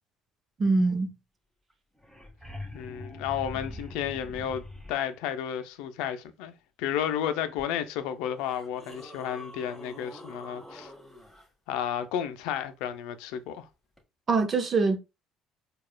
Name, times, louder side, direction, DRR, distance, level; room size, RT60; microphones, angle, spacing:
voice 1, 0.6-1.1 14.3-15.0, right 3 dB, 40° right, 0.8 m, -23 dB
sound 1, 1.7-1.8 2.0-5.1 7.6-7.7 8.3-11.4 14.0-14.1, left 1 dB, ahead, 1.6 m, -43 dB
voice 2, 2.7-10.9 11.7-13.7, left 9 dB, 80° left, 0.4 m, -32 dB
4.7 x 2.3 x 2.2 m
supercardioid pair, 80°, 0 cm